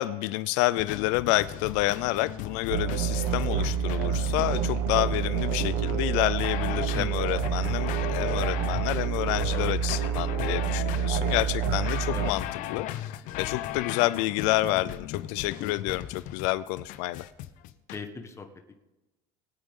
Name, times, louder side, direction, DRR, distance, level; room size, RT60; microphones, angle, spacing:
voice 1, 0.0-17.2, left 18 dB, 85° left, 15 dB, 0.5 m, -29 dB
sound 1, 0.8-18.0, left 12 dB, 65° left, 0.8 m, -37 dB
sound 2, 2.7-12.3, right 8 dB, 80° right, 1.0 m, -28 dB
voice 2, 6.9-7.3 9.5-9.7 12.1-12.3 17.9-18.7, left 4 dB, 20° left, 5 dB, 1.3 m, -38 dB
21.0 x 8.8 x 3.7 m, 1.1 s
cardioid pair, 130°, 14 cm